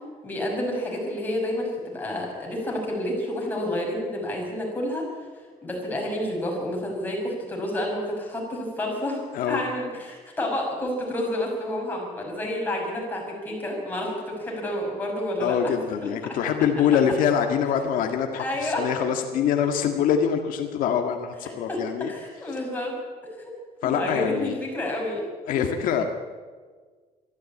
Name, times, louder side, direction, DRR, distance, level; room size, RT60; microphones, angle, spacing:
voice 1, 0.2-5.0 5.6-15.6 16.0-16.1 18.4-18.8 21.4-21.5 22.1-22.9 23.2-23.5 23.8-25.6, left 1 dB, 15° left, -2 dB, 5.9 m, -29 dB
voice 2, 15.4-22.1 23.8-24.6 25.5-26.0, left 8 dB, 80° left, 5 dB, 1.7 m, -24 dB
23.5 x 13.5 x 8.5 m, 1.5 s
cardioid pair, 170°, 14 cm